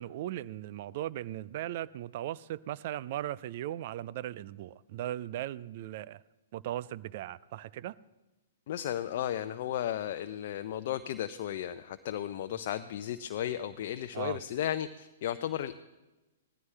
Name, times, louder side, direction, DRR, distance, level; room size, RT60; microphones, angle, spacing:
voice 1, 0.0-6.2 6.5-8.0 14.1-14.4, right 13 dB, 50° right, 19 dB, 0.5 m, -38 dB
voice 2, 8.7-15.7, left 11 dB, 55° left, 9 dB, 0.6 m, -34 dB
18.5 x 14.0 x 3.3 m, 1.1 s
figure-of-eight pair, 115°, 0 cm